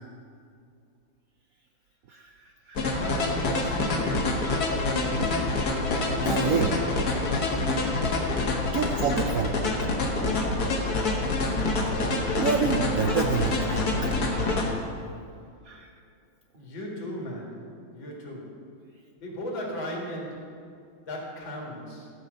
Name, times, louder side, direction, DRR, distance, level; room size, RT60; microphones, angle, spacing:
voice 1, 2.1-3.0 6.2-6.7 8.6-9.9 12.4-14.1 15.6-15.9, right 6 dB, 70° right, 4 dB, 0.8 m, -29 dB
sound 1, 2.8-14.7, left 2 dB, 55° left, 1.7 m, -26 dB
voice 2, 2.9-4.6 6.3-6.5 11.0-11.5 16.5-18.7 19.2-20.6 21.1-22.1, equal, 80° left, -2 dB, 2.7 m, -37 dB
14.0 x 5.6 x 6.4 m, 2.4 s
omnidirectional pair, 2.1 m